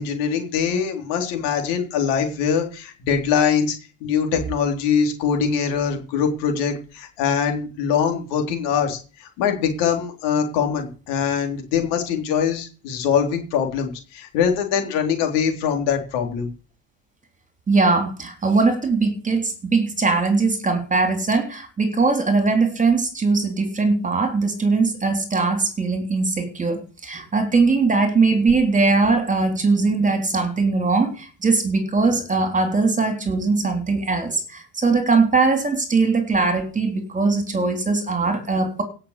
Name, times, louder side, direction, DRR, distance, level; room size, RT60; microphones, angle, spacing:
voice 1, 0.0-16.5, left 7 dB, 70° left, 3.7 m, -23 dB
voice 2, 17.7-38.8, right 4 dB, 15° right, 3.5 m, -20 dB
16.5 x 6.9 x 6.7 m
supercardioid pair, 110°, 44 cm